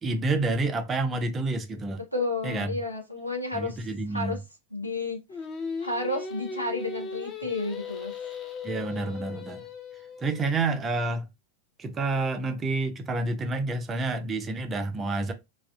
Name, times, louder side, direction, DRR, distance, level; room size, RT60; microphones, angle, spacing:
voice 1, 0.0-2.0 2.4-2.7 3.5-4.4 8.6-9.6 10.2-11.3 11.8-15.3, right 3 dB, 20° right, 0.5 m, -29 dB
voice 2, 2.1-4.4 4.7-5.2 5.8-8.1, left 2 dB, 90° left, 0.6 m, -31 dB
Singing, 5.3-10.5, left 5 dB, 25° left, 0.6 m, -37 dB
2.4 x 2.3 x 2.3 m
figure-of-eight pair, 90°, 0 cm